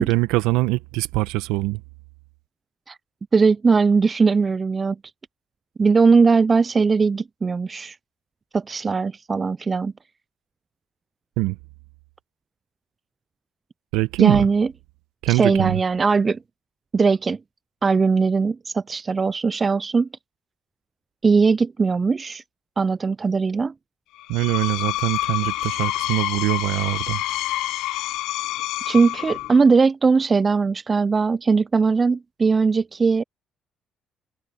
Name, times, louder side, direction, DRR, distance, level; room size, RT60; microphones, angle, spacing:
voice 1, 0.0-1.8 11.4-11.6 13.9-14.5 15.2-15.8 24.3-27.2, right 20 dB, 80° right, 1.3 m, -23 dB
voice 2, 3.3-5.0 5.8-8.0 8.5-9.9 14.2-14.7 15.3-16.4 16.9-17.4 17.8-20.1 21.2-22.4 22.8-23.7 28.9-33.2, right 4 dB, 35° right, 0.5 m, -19 dB
Screech, 24.2-29.7, left 16 dB, 75° left, 0.8 m, -27 dB
open air
hypercardioid pair, 55°, 0 cm